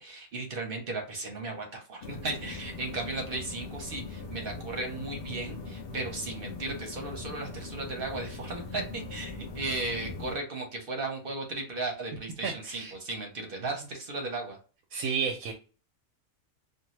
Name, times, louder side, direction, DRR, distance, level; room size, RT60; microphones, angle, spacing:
voice 1, 0.0-14.6, right 2 dB, 50° right, 2 dB, 0.8 m, -36 dB
sound 1, 2.0-10.4, left 3 dB, 60° left, 0.6 m, -41 dB
voice 2, 12.4-12.9 14.9-15.5, right 6 dB, 90° right, 2 dB, 1.0 m, -31 dB
2.6 x 2.3 x 3.0 m, 0.37 s
omnidirectional pair, 1.4 m